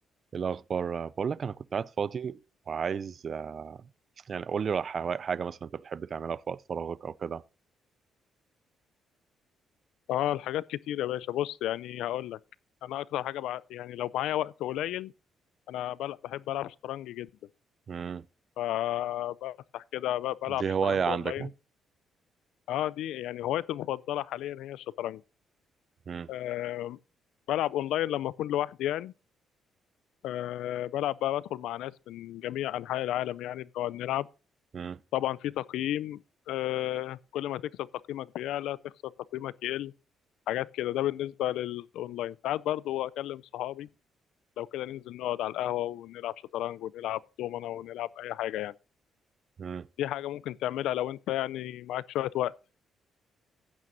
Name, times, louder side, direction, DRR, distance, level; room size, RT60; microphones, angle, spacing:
voice 1, 0.3-2.4 2.7-3.8 4.3-7.4 17.9-18.2 20.6-21.5 26.1-26.3 34.7-35.0 49.6-49.9, right 6 dB, 45° right, 0.4 m, -32 dB
voice 2, 10.1-12.4 12.8-15.1 15.7-17.3 18.6-21.5 22.7-25.2 26.3-27.0 27.5-29.1 30.2-34.3 35.1-36.2 36.5-39.9 40.5-43.9 44.6-48.7 50.0-52.5, left 13 dB, 85° left, 0.4 m, -32 dB
15.0 x 9.1 x 2.6 m
cardioid pair, 90°, 0 cm